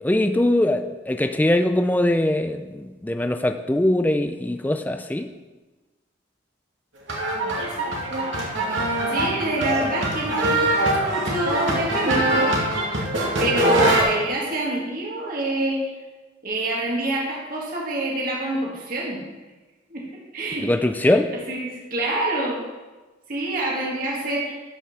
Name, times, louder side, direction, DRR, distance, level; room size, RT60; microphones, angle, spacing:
voice 1, 0.0-5.3 20.6-21.3, left 1 dB, 10° left, 7 dB, 0.4 m, -21 dB
sound 1, 7.1-14.0, right 1 dB, 75° right, 2.3 m, -23 dB
voice 2, 9.1-12.5 13.4-15.8 16.4-19.2 19.9-20.1 20.3-20.7 21.0-22.6 23.3-24.5, right 1 dB, 45° right, -3 dB, 2.1 m, -26 dB
12.5 x 5.8 x 6.0 m, 1.2 s
head